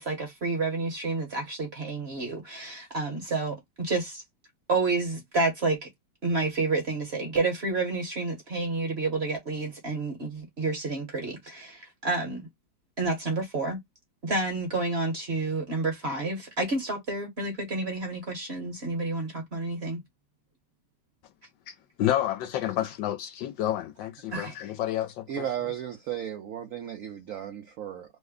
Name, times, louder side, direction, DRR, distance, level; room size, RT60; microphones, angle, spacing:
voice 1, 0.0-4.2 4.7-5.9 6.2-12.5 13.0-13.8 14.2-20.0 24.3-24.6, right 3 dB, 40° right, 1.0 m, -29 dB
voice 2, 21.7-25.4, left 12 dB, 80° left, 1.3 m, -30 dB
voice 3, 25.3-28.2, right 10 dB, 70° right, 0.8 m, -35 dB
3.1 x 2.1 x 3.5 m
omnidirectional pair, 2.0 m